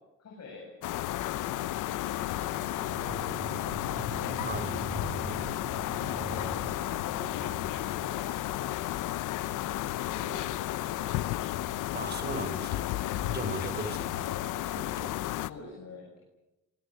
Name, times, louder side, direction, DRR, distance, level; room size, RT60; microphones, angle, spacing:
voice 1, 0.2-0.7 1.1-4.4 6.0-6.5 6.9-8.8 9.3-11.6 14.1-14.6 15.4-16.2, left 3 dB, 60° left, 0 dB, 8.0 m, -47 dB
sound 1, 0.8-15.5, left 14 dB, 85° left, 0.9 m, -33 dB
sound 2, 2.6-9.0, right 3 dB, 65° right, 6.0 m, -42 dB
voice 2, 11.9-12.9 13.2-14.2 14.7-15.2, right 3 dB, 35° right, 10 dB, 4.9 m, -37 dB
26.0 x 22.5 x 9.0 m, 1.0 s
cardioid pair, 90°, 30 cm